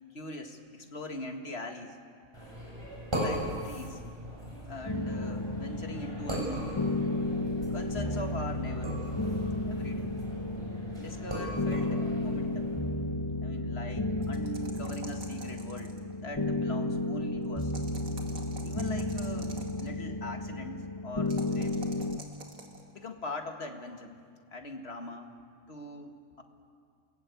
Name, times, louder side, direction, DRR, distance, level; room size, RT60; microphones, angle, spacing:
voice 1, 0.1-2.0 3.2-4.0 4.7-6.8 7.7-9.0 9.6-10.1 11.0-12.7 13.4-17.7 18.6-21.9 22.9-24.2 24.5-25.3 25.7-26.4, left 1 dB, 45° left, 5 dB, 2.1 m, -42 dB
sound 1, 2.3-12.8, equal, 20° right, 7.2 m, -39 dB
sound 2, 4.9-22.2, left 2 dB, 20° left, 0.7 m, -33 dB
sound 3, 14.2-16.1 17.6-19.9 21.3-22.8, right 3 dB, 75° right, 2.9 m, -48 dB
28.5 x 20.5 x 8.4 m, 2.2 s
omnidirectional pair, 1.5 m